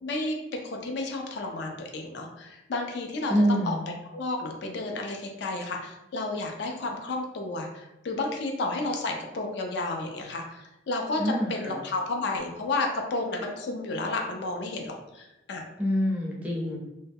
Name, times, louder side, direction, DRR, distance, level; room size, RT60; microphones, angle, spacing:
voice 1, 0.0-3.7 4.1-15.6, left 2 dB, 60° left, 2 dB, 0.4 m, -32 dB
voice 2, 3.3-3.8 11.2-11.8 15.8-16.8, equal, 5° right, -3 dB, 0.5 m, -26 dB
2.1 x 2.0 x 3.3 m, 0.94 s
head